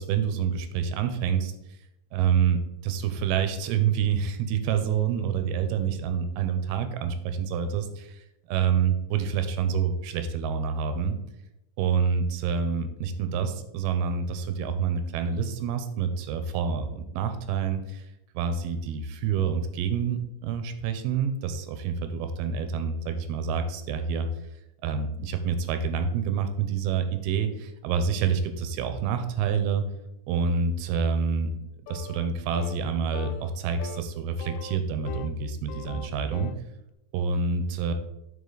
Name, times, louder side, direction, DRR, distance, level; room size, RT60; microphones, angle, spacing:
voice 1, 0.0-1.5 2.1-11.2 11.8-18.1 18.3-24.3 24.8-29.8 30.3-31.5 31.9-36.5 37.1-37.9, right 6 dB, 90° right, 8 dB, 2.7 m, -27 dB
sound 1, 31.9-32.3 32.5-32.8 33.1-33.5 33.8-34.0 34.4-35.4 35.7-36.6, left 7 dB, 85° left, 1.9 m, -40 dB
8.5 x 4.7 x 3.9 m, 0.87 s
omnidirectional pair, 4.3 m